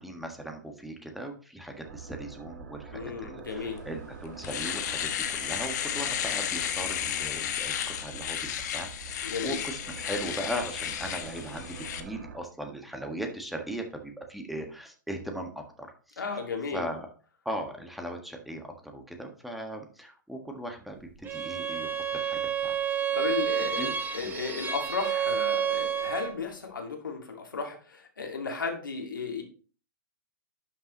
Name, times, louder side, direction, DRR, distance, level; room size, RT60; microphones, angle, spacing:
voice 1, 0.0-16.4 16.7-17.1 17.4-22.8 23.6-23.9 24.2-24.4, right 1 dB, ahead, 3 dB, 1.6 m, -38 dB
sound 1, 1.8-12.4, right 5 dB, 65° right, 1.6 m, -46 dB
voice 2, 2.9-3.8 9.2-9.6 16.2-16.8 23.1-29.4, left 5 dB, 85° left, 3 dB, 2.1 m, -34 dB
Domestic sounds home sounds, 3.8-3.9 4.3-12.0, left 10 dB, 60° left, 1.1 m, -33 dB
Bowed string instrument, 21.2-26.4, right 8 dB, 20° right, 1.0 m, -30 dB
11.5 x 5.7 x 3.0 m, 0.39 s
hypercardioid pair, 120°, 11 cm